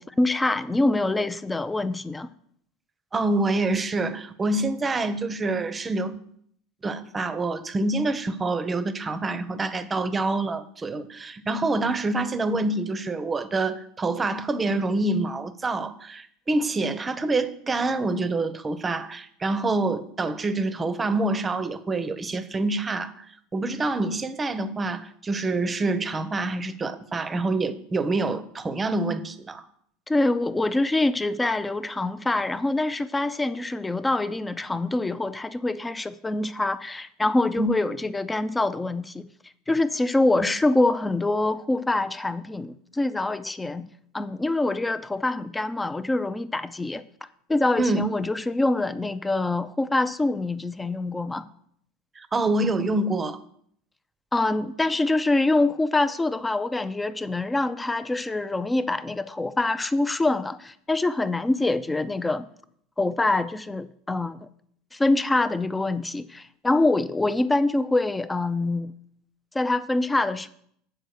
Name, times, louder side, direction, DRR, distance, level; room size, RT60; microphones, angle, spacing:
voice 1, 0.0-2.3 30.1-39.3 39.7-43.9 44.1-47.0 47.5-51.4 54.3-62.5 63.0-64.5 64.9-68.9 69.5-70.5, left 2 dB, 15° left, 0.5 m, -25 dB
voice 2, 3.1-6.2 6.8-23.2 23.5-29.6 37.6-37.7 47.8-48.0 52.2-53.4, right 2 dB, 25° right, 0.7 m, -26 dB
7.7 x 4.6 x 6.6 m
hypercardioid pair, 85°, 0 cm